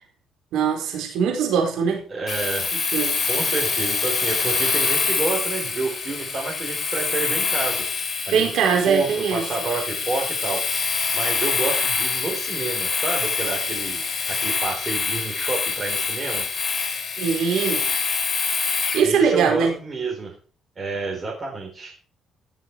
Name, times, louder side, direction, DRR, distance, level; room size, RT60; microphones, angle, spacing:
voice 1, 0.5-2.0 2.9-3.2 8.3-9.4 17.2-17.8 18.9-19.8, right 6 dB, 85° right, 2 dB, 4.6 m, -21 dB
voice 2, 2.1-2.7 3.3-7.8 8.3-8.5 8.8-10.6 11.1-14.0 14.3-16.4 19.0-20.4 20.8-22.1, right 3 dB, 35° right, -2 dB, 4.4 m, -29 dB
Domestic sounds home sounds, 2.3-19.1, left 5 dB, 35° left, 3.5 m, -25 dB
16.5 x 7.3 x 4.8 m, 0.42 s
cardioid pair, 90°, 0 cm